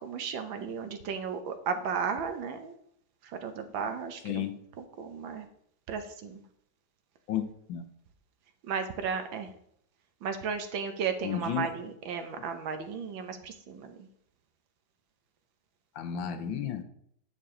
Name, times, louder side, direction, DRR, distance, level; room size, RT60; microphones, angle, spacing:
voice 1, 0.0-2.7 3.2-4.5 5.0-5.5 5.9-6.4 8.6-9.5 10.2-14.0, right 6 dB, 70° right, 8 dB, 1.6 m, -34 dB
voice 2, 4.2-4.6 7.3-7.8 11.2-11.7 16.0-16.8, left 9 dB, 70° left, 8 dB, 1.4 m, -32 dB
10.0 x 6.6 x 3.7 m, 0.69 s
omnidirectional pair, 2.4 m